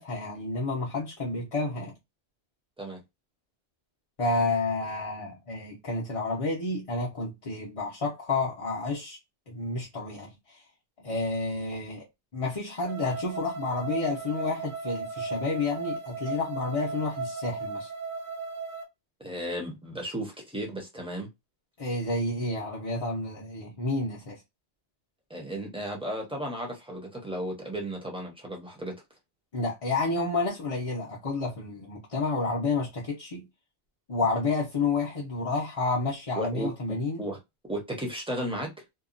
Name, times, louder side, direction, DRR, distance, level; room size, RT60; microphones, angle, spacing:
voice 1, 0.0-1.9 4.2-9.2 9.5-10.6 11.0-12.0 12.3-17.9 21.8-24.4 29.5-33.4 34.1-37.2, left 3 dB, 35° left, 0.7 m, -30 dB
sound 1, 12.8-18.8, right 4 dB, 65° right, 1.0 m, -36 dB
voice 2, 19.2-21.3 25.3-28.9 36.3-36.7 37.2-37.4 37.7-38.7, right 1 dB, 5° right, 0.8 m, -34 dB
2.8 x 2.3 x 2.4 m
omnidirectional pair, 1.1 m